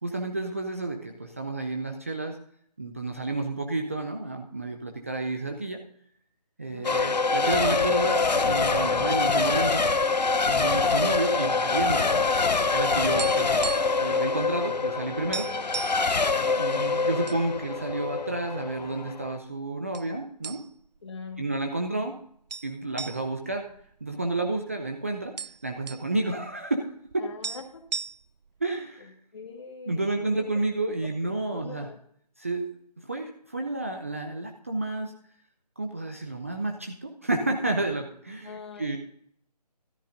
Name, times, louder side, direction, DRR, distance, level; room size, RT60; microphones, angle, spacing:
voice 1, 0.0-2.4 2.8-5.8 6.6-9.8 10.5-12.3 12.7-15.5 16.5-20.6 21.4-22.1 22.6-23.7 24.0-25.3 25.6-26.9 27.1-27.2 28.6-29.1 29.9-31.9 32.4-32.7 33.0-35.1 35.8-39.0, right 2 dB, 20° right, 3 dB, 0.5 m, -30 dB
voice 2, 6.6-7.2 15.5-15.6 21.0-21.5 27.2-27.8 29.0-30.6 31.0-32.0 38.4-39.0, left 5 dB, 40° left, 5 dB, 1.6 m, -43 dB
Race car auto racing / Accelerating revving vroom / Mechanisms, 6.8-19.4, left 4 dB, 85° left, 0.8 m, -25 dB
sound 1, 13.2-14.1 14.3-14.5 14.9-15.0 15.3-16.1 16.7-17.4 17.8-17.9 18.6-19.2 19.9-20.1 20.4-21.0 21.3-21.4 22.5-24.6 24.9-25.0 25.1-26.1 27.1-27.2 27.4-28.5, right 6 dB, 80° right, 0.4 m, -36 dB
13.5 x 13.0 x 2.6 m, 0.63 s
figure-of-eight pair, 160°, 21 cm